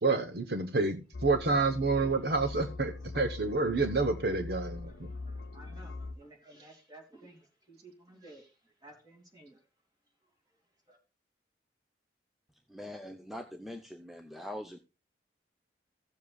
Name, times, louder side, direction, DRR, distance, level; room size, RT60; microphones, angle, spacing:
voice 1, 0.0-5.1, right 3 dB, 60° right, 0.9 m, -29 dB
sound 1, 1.1-6.1, left 3 dB, 70° left, 0.7 m, -42 dB
voice 2, 4.9-9.7 10.9-11.0, right 1 dB, 20° right, 2.6 m, -55 dB
voice 3, 12.7-14.8, left 1 dB, ahead, 0.7 m, -43 dB
16.0 x 7.4 x 2.4 m
head